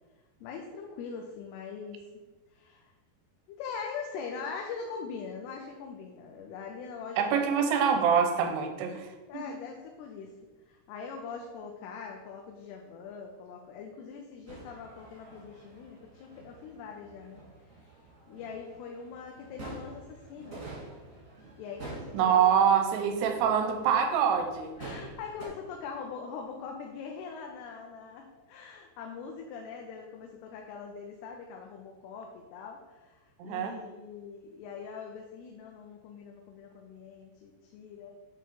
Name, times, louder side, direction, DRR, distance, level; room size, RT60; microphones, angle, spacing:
voice 1, 0.4-2.1 2.5-2.9 3.5-7.4 9.3-10.3 10.7-17.4 17.8-17.9 18.3-20.6 21.6-22.5 24.8-38.1, left 5 dB, 80° left, 2 dB, 2.6 m, -42 dB
voice 2, 7.2-9.1 9.3-9.4 22.1-24.7 33.4-33.8, right 7 dB, 85° right, 5 dB, 2.7 m, -25 dB
sound 1, 14.5-25.5, right 2 dB, 50° right, 0.9 m, -48 dB
8.8 x 3.0 x 4.6 m, 1.2 s
omnidirectional pair, 4.7 m